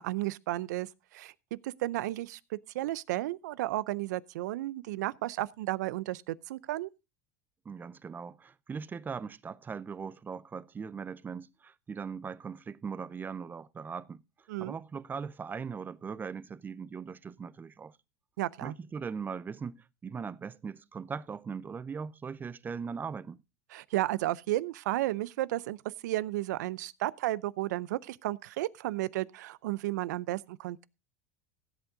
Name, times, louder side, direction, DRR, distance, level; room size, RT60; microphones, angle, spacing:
voice 1, 0.0-1.3 1.6-6.9 14.5-14.8 18.4-18.7 23.7-25.8 26.0-30.9, right 16 dB, 75° right, 0.6 m, -33 dB
voice 2, 7.7-14.2 14.6-18.0 18.6-23.4, right 6 dB, 20° right, 0.6 m, -40 dB
16.5 x 8.1 x 3.8 m
hypercardioid pair, 105°, 10 cm